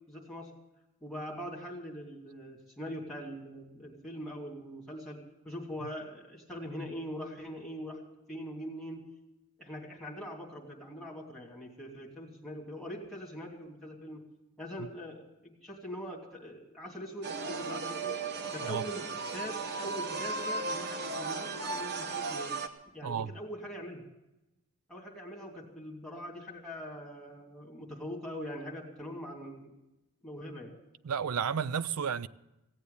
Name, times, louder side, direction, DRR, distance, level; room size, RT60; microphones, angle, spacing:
voice 1, 0.1-0.5 1.0-5.2 5.4-8.0 8.3-9.0 9.6-14.2 14.6-18.2 18.5-19.1 19.3-22.5 22.9-24.0 24.9-29.7 30.2-30.7, equal, ahead, 2.9 m, -42 dB
sound 1, 17.2-22.7, right 3 dB, 50° right, 1.0 m, -36 dB
voice 2, 23.0-23.3 31.0-32.3, right 7 dB, 80° right, 0.5 m, -32 dB
16.5 x 8.3 x 8.5 m
head